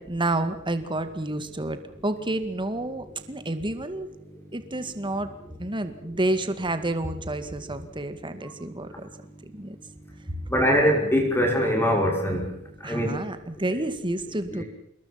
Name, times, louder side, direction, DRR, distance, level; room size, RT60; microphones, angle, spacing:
voice 1, 0.0-4.1 4.5-5.3 5.6-9.1 9.5-9.8 12.8-14.6, right 1 dB, 25° right, 10 dB, 2.1 m, -29 dB
voice 2, 10.5-12.5 12.8-13.3 14.5-14.6, equal, 10° left, 1 dB, 5.6 m, -22 dB
27.0 x 21.5 x 5.9 m, 0.75 s
head